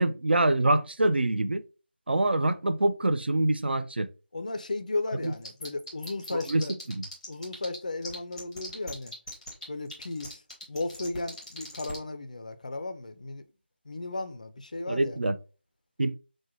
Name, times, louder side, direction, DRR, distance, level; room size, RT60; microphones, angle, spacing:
voice 1, 0.0-1.6 2.1-4.1 5.2-5.3 6.3-6.6 6.9-7.0 14.9-15.3 16.0-16.2, right 2 dB, 65° right, 0.3 m, -25 dB
voice 2, 4.3-6.7 7.3-9.1 9.7-10.4 10.7-13.4 13.9-15.2, left 2 dB, 45° left, 0.4 m, -35 dB
sound 1, 5.2-7.8 8.0-12.0, left 2 dB, 5° left, 0.7 m, -41 dB
4.5 x 2.1 x 2.8 m
figure-of-eight pair, 165°, 6 cm